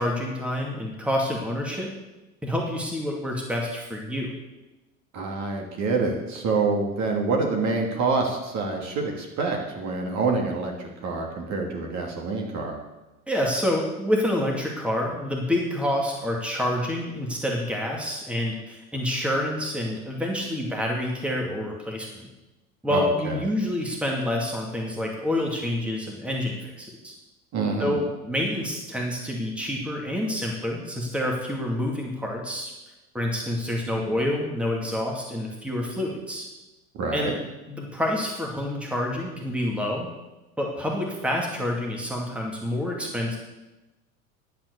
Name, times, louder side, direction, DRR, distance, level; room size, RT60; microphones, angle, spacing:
voice 1, 0.0-1.9 2.4-4.3 13.3-22.3 22.8-27.1 27.8-32.7 33.1-36.5 37.1-37.4 37.7-40.1 40.6-43.4, left 1 dB, 5° right, -1 dB, 2.3 m, -28 dB
voice 2, 5.1-12.8 22.9-23.4 27.5-28.0 36.9-37.3, right 3 dB, 40° right, 1 dB, 2.8 m, -26 dB
10.5 x 8.7 x 6.8 m, 1.1 s
figure-of-eight pair, 80°, 43 cm